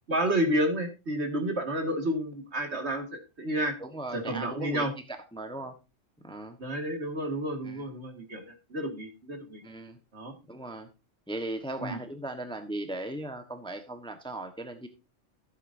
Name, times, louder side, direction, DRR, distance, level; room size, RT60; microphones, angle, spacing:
voice 1, 0.1-3.0 3.4-3.7 4.1-4.9 6.6-9.6 10.1-10.3 11.8-12.0, right 1 dB, 60° right, 4 dB, 2.3 m, -30 dB
voice 2, 3.8-5.7 6.2-6.6 7.6-7.8 9.6-10.0 10.5-10.9 11.3-14.9, right 2 dB, 5° left, 6 dB, 1.1 m, -38 dB
14.5 x 8.2 x 2.7 m, 0.28 s
omnidirectional pair, 1.3 m